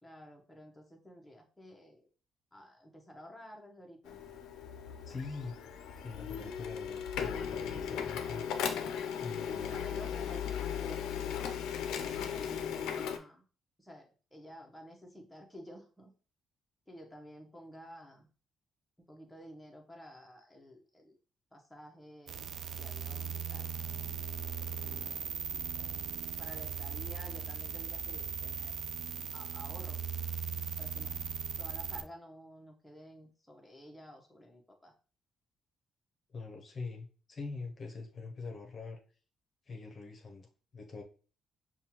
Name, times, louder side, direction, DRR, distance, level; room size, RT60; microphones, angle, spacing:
voice 1, 0.0-2.1 2.5-4.2 9.5-13.4 13.8-16.1 16.9-18.3 19.1-21.2 21.5-23.7 24.5-25.9 26.4-28.8 29.3-30.1 30.8-31.2 31.6-34.9, equal, 5° left, 0 dB, 0.8 m, -52 dB
Printer, 4.0-13.2, left 8 dB, 90° left, 0.5 m, -37 dB
voice 2, 5.1-5.5 6.0-8.4 9.2-9.9 36.3-39.0 39.7-41.0, left 4 dB, 45° left, 2 dB, 0.7 m, -43 dB
sound 1, 22.3-32.0, right 7 dB, 60° right, 0.3 m, -38 dB
5.3 x 2.3 x 2.9 m, 0.39 s
cardioid pair, 90°, 0 cm